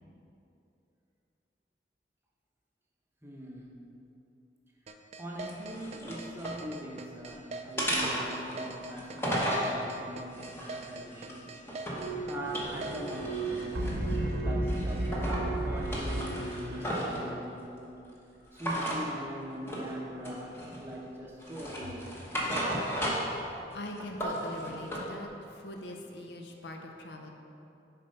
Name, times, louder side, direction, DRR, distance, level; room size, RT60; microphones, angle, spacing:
voice 1, 3.2-3.9 5.2-11.5 12.3-14.1 14.4-17.9 18.5-22.1, equal, 15° right, -3 dB, 0.8 m, -42 dB
sound 1, 4.9-13.2, right 3 dB, 35° right, 0.4 m, -42 dB
sound 2, 5.4-6.6 7.0-7.4 7.8-9.7 10.3-12.1 12.4-14.3 14.7-15.5 15.8-17.2 18.6-19.0 19.7-19.9 20.2-21.0 21.4-23.4 23.7-25.1, equal, 15° left, 1.0 m, -34 dB
sound 3, 11.9-17.3, right 1 dB, 60° right, 0.8 m, -33 dB
voice 2, 22.4-27.3, left 1 dB, 70° left, 2 dB, 0.7 m, -43 dB
7.2 x 4.2 x 5.5 m, 2.7 s
head